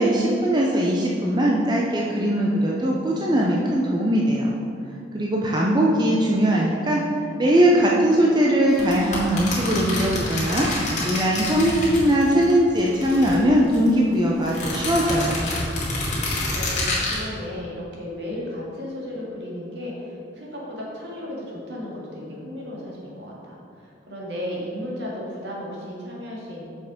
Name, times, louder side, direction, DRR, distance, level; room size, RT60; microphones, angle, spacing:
voice 1, 0.0-4.5 5.1-7.0 7.4-15.5, equal, 25° right, -3 dB, 0.6 m, -20 dB
sound 1, 8.7-12.5 12.8-13.9 14.4-17.2, left 2 dB, 40° left, 1.9 m, -28 dB
voice 2, 16.3-26.6, left 1 dB, 65° right, -4 dB, 2.0 m, -35 dB
6.9 x 5.8 x 5.0 m, 2.5 s
head